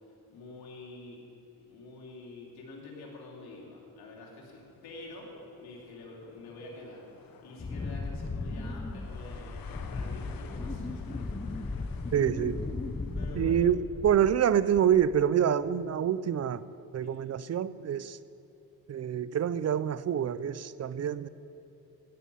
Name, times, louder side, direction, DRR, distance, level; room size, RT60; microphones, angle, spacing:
voice 1, 0.0-1.2 1.6-11.3 11.8-12.1 13.1-13.6 17.0-17.2, left 3 dB, 90° left, -2 dB, 3.2 m, -47 dB
sound 1, 4.5-13.6, left 6 dB, 65° left, 1.1 m, -52 dB
Wind, 7.6-14.4 14.7-15.2, left 3 dB, 15° left, 0.7 m, -36 dB
voice 2, 12.1-12.6 13.3-16.6 16.9-18.2 18.9-21.3, right 9 dB, 45° right, 16 dB, 0.5 m, -26 dB
16.5 x 9.9 x 5.6 m, 2.9 s
cardioid pair, 85°, 36 cm